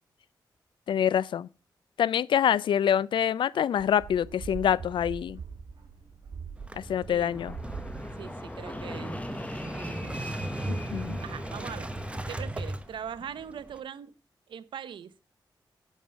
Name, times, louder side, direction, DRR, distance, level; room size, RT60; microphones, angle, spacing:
voice 1, 0.9-1.5 2.0-5.4 6.7-7.5 10.7-11.2, left 9 dB, 80° left, 0.4 m, -26 dB
sound 1, 3.8-9.3, right 5 dB, 60° right, 3.8 m, -43 dB
Motorcycle / Engine starting, 6.6-13.8, right 1 dB, 15° right, 0.9 m, -37 dB
voice 2, 7.1-7.4 8.2-9.2 9.7-10.4 10.8-11.9 12.3-14.1 14.5-15.1, right 8 dB, 80° right, 0.7 m, -41 dB
Fixed-wing aircraft airplane, 7.3-12.9, left 1 dB, 15° left, 1.1 m, -41 dB
11.5 x 5.5 x 6.4 m
cardioid pair, 85°, 8 cm